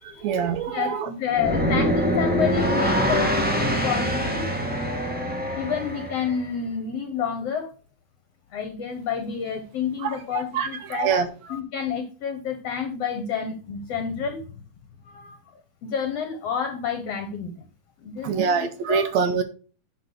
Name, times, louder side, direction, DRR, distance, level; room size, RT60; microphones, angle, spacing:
voice 1, 0.0-1.1 10.0-11.3 18.2-19.4, right 6 dB, 75° right, 9 dB, 1.7 m, -25 dB
voice 2, 0.6-4.5 5.6-7.7 8.5-11.1 11.5-14.6 15.1-15.4 15.8-17.5 18.0-19.0, left 7 dB, 60° left, 6 dB, 1.8 m, -29 dB
sound 1, 1.3-6.4, equal, 15° right, 0.3 m, -24 dB
9.4 x 3.9 x 6.7 m, 0.37 s
omnidirectional pair, 3.9 m